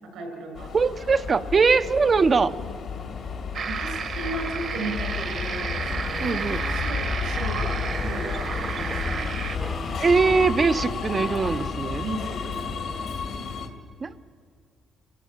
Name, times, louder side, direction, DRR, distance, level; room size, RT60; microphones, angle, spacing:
voice 1, 0.0-0.7 2.6-2.7 3.7-9.3 12.0-13.1, right 2 dB, 85° right, 4 dB, 6.2 m, -36 dB
Subway metro underground, 0.6-13.7, left 5 dB, 65° left, 2.2 m, -32 dB
voice 2, 0.7-2.5 6.2-6.6 10.0-12.1 14.0-14.1, right 4 dB, 40° right, 10 dB, 0.8 m, -21 dB
sound 1, 2.9-7.1 7.5-11.8, right 1 dB, 15° right, 0.9 m, -42 dB
sound 2, 3.5-9.6, right 6 dB, 60° right, 1.6 m, -32 dB
28.5 x 15.0 x 8.8 m, 2.1 s
cardioid pair, 90°, 0 cm